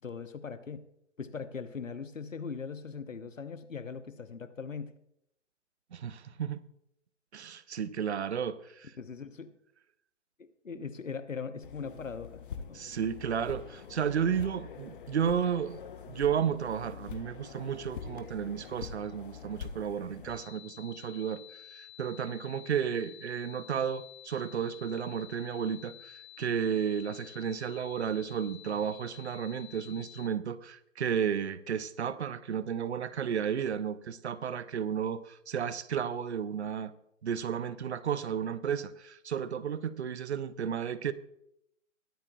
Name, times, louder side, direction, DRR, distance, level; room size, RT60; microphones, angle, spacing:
voice 1, 0.0-0.9 1.2-4.9 9.0-9.5 10.4-12.8, left 5 dB, 85° left, 11 dB, 0.9 m, -40 dB
voice 2, 5.9-6.6 7.3-8.9 12.7-15.8 16.1-21.4 21.7-36.9 37.2-41.1, right 8 dB, 60° right, 16 dB, 0.7 m, -33 dB
sound 1, 11.6-20.4, left 7 dB, 45° left, 1.0 m, -45 dB
sound 2, 20.3-30.3, left 16 dB, 25° left, 0.4 m, -51 dB
21.5 x 8.3 x 2.3 m, 0.78 s
figure-of-eight pair, 130°, 38 cm